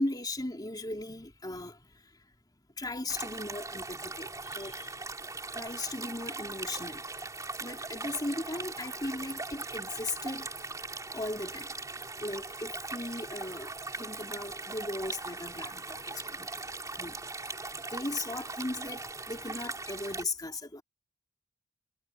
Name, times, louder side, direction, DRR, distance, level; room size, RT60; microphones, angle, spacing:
voice 1, 0.0-1.8 2.8-5.0 5.5-7.0 7.6-10.5 11.1-11.7 12.2-16.6 17.0-17.2 17.9-20.8, left 2 dB, 20° left, 3.2 m, -37 dB
sound 1, 3.1-20.2, right 3 dB, 15° right, 4.9 m, -40 dB
head